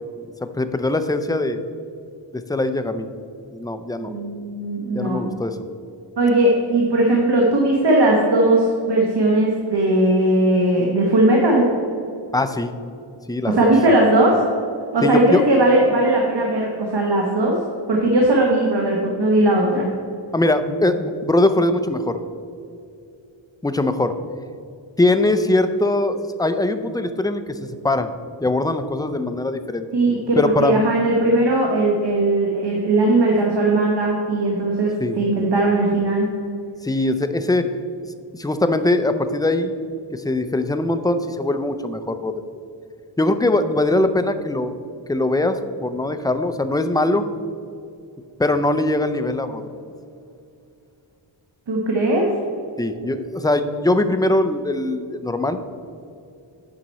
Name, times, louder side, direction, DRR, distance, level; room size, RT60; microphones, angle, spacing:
voice 1, 0.2-1.6 2.3-3.1 3.5-4.1 4.9-5.6 12.3-12.7 13.3-13.7 15.0-15.4 20.3-22.2 23.6-24.2 25.0-28.1 28.4-29.9 30.4-30.8 35.0-35.2 36.8-37.7 38.3-39.7 40.1-42.4 43.2-44.7 45.1-47.3 48.4-49.6 52.8-55.6, left 2 dB, 10° left, 9 dB, 0.4 m, -21 dB
voice 2, 4.0-5.3 6.2-11.6 13.5-14.3 14.9-17.6 17.9-19.9 29.9-36.3 51.7-52.3, right 1 dB, 60° right, -1 dB, 1.3 m, -18 dB
9.0 x 5.9 x 4.1 m, 2.5 s
wide cardioid pair, 85°, 47 cm